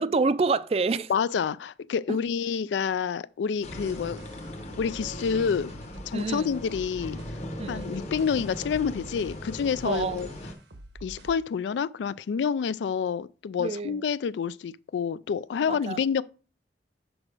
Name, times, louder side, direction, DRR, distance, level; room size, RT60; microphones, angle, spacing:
voice 1, 0.0-1.1 2.1-2.2 6.1-6.5 7.6-8.0 9.8-10.2 13.6-14.0 15.7-16.0, right 4 dB, 35° right, 0.3 m, -27 dB
voice 2, 1.1-4.2 4.8-5.7 6.1-7.2 7.7-10.3 11.0-16.2, left 6 dB, 85° left, 0.3 m, -28 dB
sound 1, 3.6-10.5, left 1 dB, 40° left, 1.0 m, -39 dB
sound 2, 3.7-11.5, right 1 dB, 85° right, 1.1 m, -47 dB
6.3 x 4.9 x 4.8 m
head